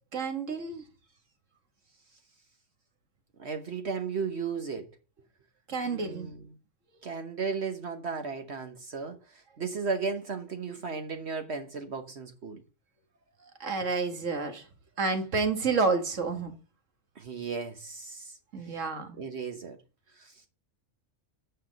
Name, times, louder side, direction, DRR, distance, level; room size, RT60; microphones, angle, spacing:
voice 1, 0.1-0.8 5.7-6.3 13.6-14.7 15.0-16.5 18.5-19.2, right 4 dB, 85° right, 2.0 m, -29 dB
voice 2, 3.4-4.8 5.8-6.4 7.0-12.6 17.2-18.3 18.7-18.8 19.2-19.8 20.2-20.3, right 5 dB, 60° right, 1.3 m, -35 dB
9.1 x 5.8 x 5.2 m
omnidirectional pair, 1.3 m